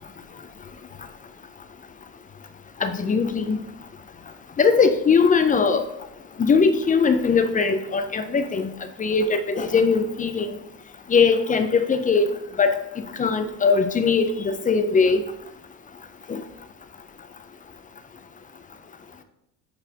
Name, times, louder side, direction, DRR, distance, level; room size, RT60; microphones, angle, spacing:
voice 1, 2.8-3.6 4.6-5.8 6.4-8.7 9.0-10.5 11.1-12.3 12.6-12.8 13.2-15.2 16.3-16.4, left 5 dB, 20° left, 10 dB, 0.3 m, -20 dB
9.7 x 4.0 x 2.7 m, 0.83 s
cardioid pair, 110°, 44 cm